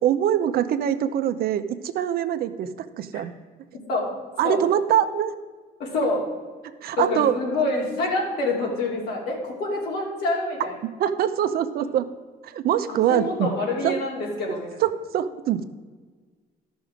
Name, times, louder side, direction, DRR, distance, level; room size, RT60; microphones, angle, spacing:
voice 1, 0.0-2.7 3.0-3.3 4.4-5.3 6.8-7.4 11.0-12.1 12.4-13.5 13.8-13.9 14.8-15.6, right 10 dB, 65° right, 10 dB, 0.7 m, -23 dB
voice 2, 3.9-4.6 5.8-6.3 7.0-10.8 12.7-14.8, left 2 dB, 70° left, -2 dB, 2.9 m, -27 dB
12.0 x 6.1 x 5.0 m, 1.4 s
cardioid pair, 110°, 17 cm